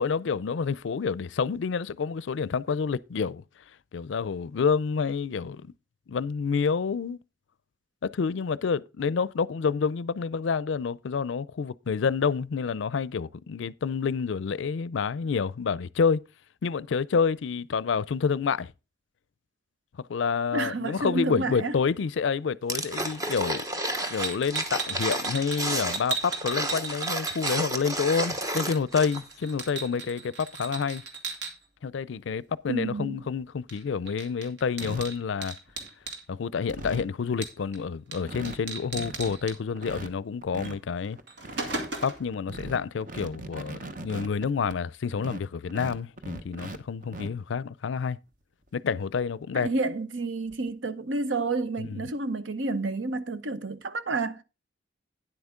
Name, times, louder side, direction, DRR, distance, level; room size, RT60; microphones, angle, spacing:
voice 1, 0.0-3.4 3.9-5.7 6.1-7.2 8.0-16.2 16.6-18.7 20.1-23.6 24.1-31.0 31.8-35.5 36.3-41.2 42.0-48.2 48.7-49.7 51.8-52.0, left 5 dB, 75° left, 0.4 m, -28 dB
voice 2, 20.5-21.7 32.7-33.2 49.5-54.4, right 3 dB, 75° right, 0.8 m, -30 dB
sound 1, 22.7-29.3 29.6-29.7, right 1 dB, 20° right, 0.9 m, -31 dB
sound 2, 24.2-28.0 28.2-31.5 33.7-33.8 34.1-36.2 37.4-37.8 38.1-38.2 38.4-39.5 40.6-40.8 41.1-42.3, right 4 dB, 60° right, 2.1 m, -36 dB
sound 3, 33.3-33.4 33.9-34.2 34.8-35.0 35.7-36.0 36.3-36.4 36.6-37.1 37.6-37.7 37.9-38.0 38.2-38.6 38.8-39.3 39.8-40.8 41.2-41.9 42.3-44.8 45.2-46.8 47.0-47.3 48.7-48.8 49.2-49.3 50.5-50.7, right 2 dB, 45° right, 1.0 m, -40 dB
10.0 x 8.0 x 3.6 m
head